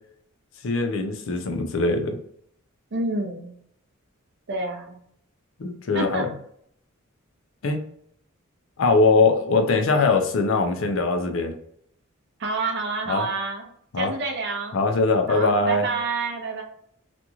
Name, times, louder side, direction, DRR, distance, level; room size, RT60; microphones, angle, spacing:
voice 1, 0.6-2.2 5.6-6.3 7.6-7.8 8.8-11.5 13.1-13.3 13.9-14.1 14.7-15.8, left 3 dB, 60° left, 5 dB, 0.5 m, -21 dB
voice 2, 2.9-3.5 4.5-5.0 5.9-6.3 12.4-13.7 14.0-14.8 15.3-16.6, right 3 dB, 55° right, 3 dB, 0.6 m, -28 dB
2.9 x 2.5 x 2.3 m, 0.68 s
head